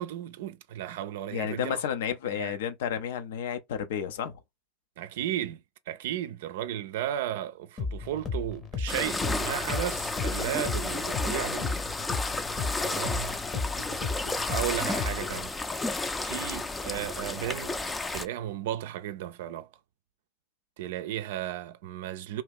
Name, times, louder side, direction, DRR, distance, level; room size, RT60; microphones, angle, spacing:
voice 1, 0.0-1.8 2.2-2.6 5.0-11.8 12.8-13.4 14.2-15.6 16.2-17.8 18.1-19.7 20.8-22.4, right 12 dB, 70° right, 0.4 m, -34 dB
voice 2, 1.3-4.4, left 8 dB, 70° left, 0.6 m, -31 dB
sound 1, 7.8-15.4, left 4 dB, 35° left, 0.8 m, -34 dB
sound 2, 8.9-18.3, left 3 dB, 15° left, 0.5 m, -32 dB
2.8 x 2.4 x 3.5 m
hypercardioid pair, 80°, 0 cm